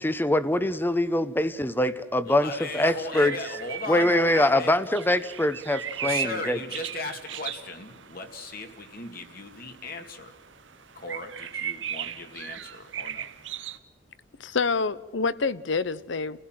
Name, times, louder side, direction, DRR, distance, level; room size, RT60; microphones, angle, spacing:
voice 1, 0.0-3.3 3.9-6.6, left 1 dB, 10° left, 13 dB, 0.8 m, -24 dB
voice 2, 2.2-4.8 6.0-10.3 11.0-13.3, left 3 dB, 50° left, 5 dB, 2.3 m, -37 dB
sound 1, 2.3-13.8, right 9 dB, 85° right, 1.0 m, -38 dB
voice 3, 14.4-16.4, left 4 dB, 80° left, 17 dB, 0.8 m, -27 dB
30.0 x 16.5 x 7.5 m, 1.2 s
head